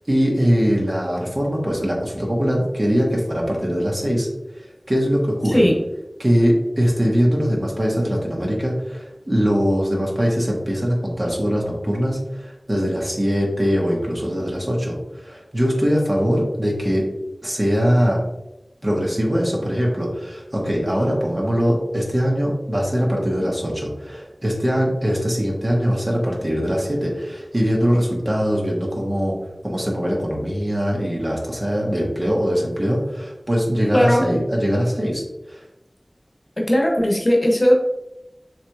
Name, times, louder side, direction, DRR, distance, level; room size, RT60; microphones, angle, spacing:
voice 1, 0.1-4.3 4.6-5.6 6.2-17.1 17.4-18.2 18.8-29.4 29.6-35.6, equal, 35° right, -2 dB, 1.3 m, -21 dB
voice 2, 33.9-34.2 36.6-37.7, equal, 45° left, -1 dB, 1.0 m, -17 dB
6.9 x 3.1 x 2.4 m, 0.92 s
wide cardioid pair, 45°, 0 cm